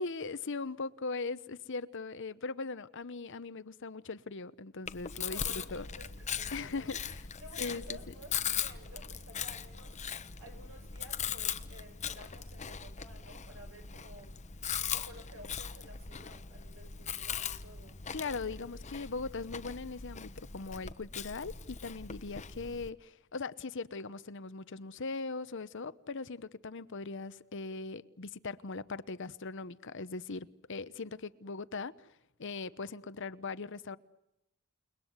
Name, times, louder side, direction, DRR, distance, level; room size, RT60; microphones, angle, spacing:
voice 1, 0.0-5.8 6.5-7.2 7.6-8.0 18.1-31.9 32.4-34.0, left 3 dB, 65° left, 15 dB, 0.9 m, -40 dB
Chewing mastication, 4.9-22.9, left 7 dB, 35° left, 1.0 m, -40 dB
voice 2, 5.3-7.0 7.4-14.4 14.8-18.0, right 1 dB, 70° right, 5 dB, 7.2 m, -53 dB
29.5 x 20.5 x 8.1 m, 0.86 s
head